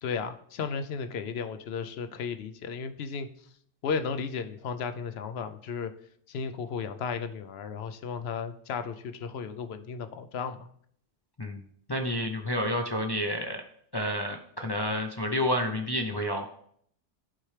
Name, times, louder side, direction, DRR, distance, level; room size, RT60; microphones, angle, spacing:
voice 1, 0.0-3.3 3.8-5.9 6.3-10.7, left 5 dB, 70° left, 9 dB, 0.8 m, -34 dB
voice 2, 11.9-13.6 13.9-16.6, equal, 30° left, 3 dB, 0.4 m, -30 dB
11.5 x 4.4 x 3.3 m, 0.64 s
omnidirectional pair, 1.2 m